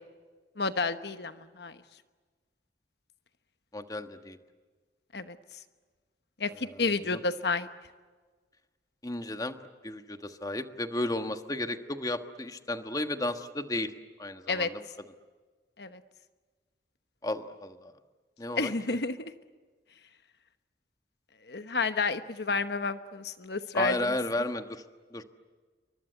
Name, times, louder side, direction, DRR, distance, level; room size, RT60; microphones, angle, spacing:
voice 1, 0.6-1.7 5.1-5.4 6.4-7.7 14.5-14.7 15.8-16.0 18.6-19.3 21.5-24.2, left 4 dB, 65° left, 10 dB, 1.1 m, -30 dB
voice 2, 3.7-4.4 6.5-6.8 7.1-7.2 9.0-9.5 9.8-13.9 14.2-14.8 17.2-17.9 18.4-18.7 23.7-24.8 25.1-25.2, left 1 dB, 20° left, 8 dB, 1.4 m, -33 dB
29.0 x 24.5 x 8.0 m, 1.4 s
head